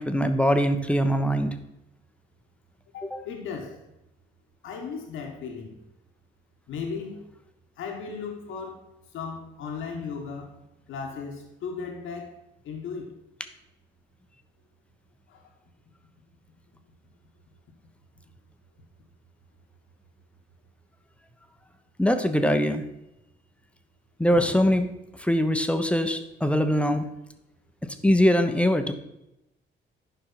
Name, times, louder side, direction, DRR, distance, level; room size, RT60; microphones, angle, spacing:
voice 1, 0.0-1.5 3.1-3.2 22.0-22.8 24.2-24.9 25.2-27.1 28.0-28.9, equal, 5° left, 7 dB, 1.0 m, -22 dB
voice 2, 2.9-3.8 4.6-5.8 6.7-7.2 7.8-10.5 10.9-12.4 12.6-13.2 15.3-15.5, left 5 dB, 85° left, 2 dB, 1.7 m, -36 dB
9.9 x 5.6 x 5.7 m, 0.89 s
cardioid pair, 90°, 20 cm